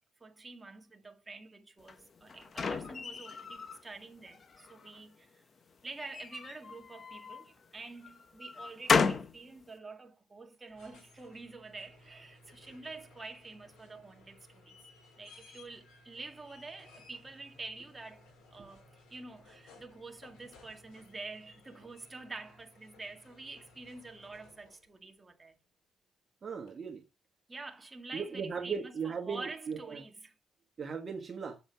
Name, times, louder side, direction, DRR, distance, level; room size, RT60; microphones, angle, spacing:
voice 1, 0.2-5.4 5.8-14.8 15.2-18.3 18.5-25.5 27.5-30.1, right 3 dB, 20° right, 2.0 m, -47 dB
sound 1, 1.9-3.8 4.3-5.0 6.0-7.5 8.0-9.4, left 5 dB, 45° left, 1.1 m, -33 dB
sound 2, 10.5-24.9 26.7-26.8, left 2 dB, 85° left, 4.6 m, -59 dB
voice 2, 26.4-27.0 28.1-30.0 30.8-31.6, right 6 dB, 40° right, 1.5 m, -38 dB
7.6 x 7.2 x 5.7 m
cardioid pair, 90°, 0 cm